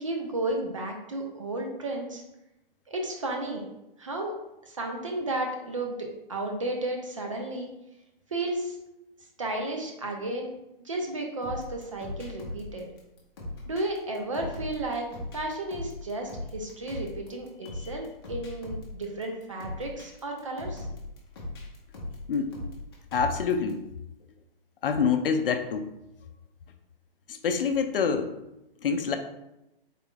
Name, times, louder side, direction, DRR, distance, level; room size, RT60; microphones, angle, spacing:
voice 1, 0.0-2.2 2.9-3.7 4.0-4.3 4.7-7.7 8.3-8.8 9.4-10.5 10.8-13.0 13.7-15.1 15.3-20.9, right 2 dB, 35° right, 2 dB, 0.4 m, -33 dB
sound 1, 11.4-23.7, left 1 dB, 25° left, 0.7 m, -39 dB
voice 2, 22.3-22.6 23.1-23.8 24.8-25.9 27.3-28.3 28.8-29.2, left 6 dB, 65° left, 7 dB, 0.5 m, -26 dB
3.8 x 2.2 x 3.5 m, 0.91 s
hypercardioid pair, 165°, 29 cm